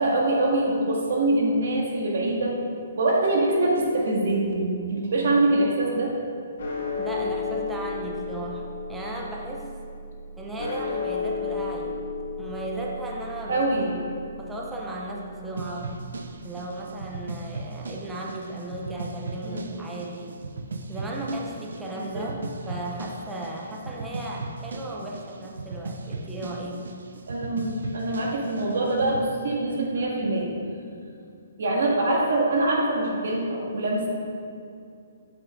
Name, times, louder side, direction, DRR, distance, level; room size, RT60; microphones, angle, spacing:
voice 1, 0.0-2.5 3.0-6.1 13.5-14.0 19.4-19.6 21.9-22.3 27.3-30.5 31.6-34.1, right 2 dB, 60° right, -2 dB, 1.7 m, -24 dB
sound 1, 6.6-17.0, left 4 dB, 65° left, 1.5 m, -34 dB
voice 2, 7.0-9.7 10.4-12.1 12.4-14.0 14.4-15.9 16.4-20.4 20.9-22.4 22.7-26.9, right 1 dB, 5° right, -3 dB, 0.6 m, -35 dB
sound 2, 15.6-29.3, right 3 dB, 90° right, 0.6 m, -37 dB
7.7 x 7.4 x 3.6 m, 2.5 s
hypercardioid pair, 175°, 0 cm